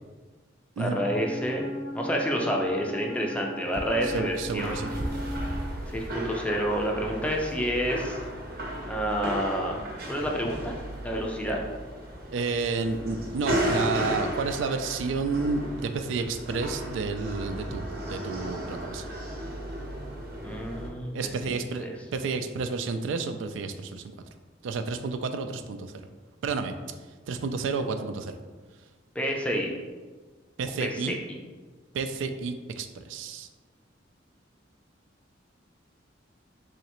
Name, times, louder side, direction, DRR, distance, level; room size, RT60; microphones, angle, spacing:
voice 1, 0.8-1.6 1.9-4.9 5.9-8.2 8.8-9.8 10.1-10.8 11.0-11.6 20.4-21.1 21.4-21.9 29.2-29.7 30.8-31.1, equal, 5° left, 0 dB, 0.4 m, -29 dB
Wind instrument woodwind instrument, 0.9-5.7, left 1 dB, 75° left, 0.6 m, -37 dB
sound 1, 3.7-20.9, right 1 dB, 55° right, 0.7 m, -34 dB
voice 2, 4.0-4.9 12.3-19.1 21.1-21.9 22.1-24.1 24.6-26.1 26.4-26.7 27.3-28.3 30.6-31.2 31.9-33.5, right 4 dB, 85° right, 8 dB, 0.3 m, -30 dB
3.8 x 3.2 x 3.0 m, 1.3 s
head